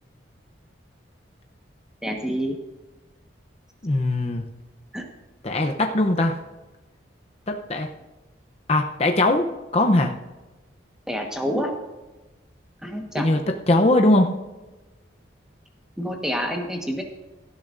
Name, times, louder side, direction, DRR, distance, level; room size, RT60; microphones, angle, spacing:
voice 1, 2.0-2.6 4.9-5.1 11.1-11.7 12.8-13.3 16.0-17.0, equal, 5° right, 2 dB, 1.3 m, -27 dB
voice 2, 3.8-4.4 5.4-6.4 7.5-7.9 8.7-9.5 9.7-10.1 13.2-13.4 13.7-14.3, left 1 dB, 30° left, 3 dB, 0.7 m, -20 dB
17.0 x 12.0 x 2.6 m, 1.1 s
head